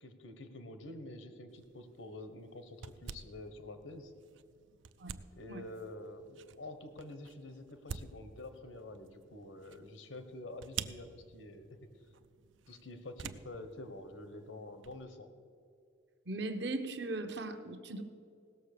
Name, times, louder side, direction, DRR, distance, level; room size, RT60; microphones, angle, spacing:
voice 1, 0.0-4.1 5.4-11.7 12.7-15.3, left 2 dB, 85° left, 9 dB, 1.1 m, -48 dB
sound 1, 1.5-15.0, right 7 dB, 80° right, 0.4 m, -50 dB
voice 2, 16.3-18.0, right 2 dB, 60° right, 8 dB, 0.9 m, -38 dB
17.0 x 6.7 x 6.7 m, 2.4 s
head